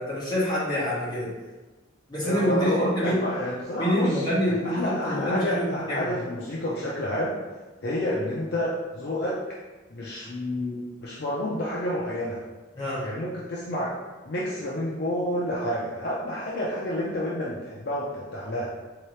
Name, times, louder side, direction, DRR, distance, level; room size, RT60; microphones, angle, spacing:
voice 1, 0.0-1.3 2.1-3.2 3.8-6.2 12.7-13.0, equal, 20° left, -10 dB, 1.4 m, -26 dB
voice 2, 2.2-7.4 7.8-9.4 9.9-12.4 13.0-13.9 14.3-18.7, left 1 dB, 55° left, -5 dB, 0.5 m, -29 dB
3.7 x 2.9 x 3.2 m, 1.2 s
head